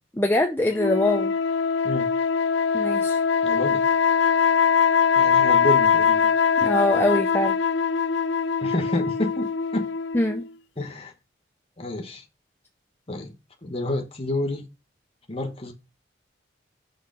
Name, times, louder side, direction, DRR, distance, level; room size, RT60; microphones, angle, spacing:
voice 1, 0.1-1.3 2.7-3.2 6.6-7.6 10.1-10.4, left 1 dB, 10° left, 0.5 m, -23 dB
sound 1, 0.8-10.5, left 6 dB, 70° left, 0.4 m, -22 dB
voice 2, 3.4-3.8 5.2-6.3 8.6-9.5 9.7-9.9 10.8-11.1 11.8-12.2 13.1-13.3 13.6-14.7 15.3-15.7, left 1 dB, 30° left, 1.2 m, -29 dB
6.2 x 3.9 x 6.3 m
head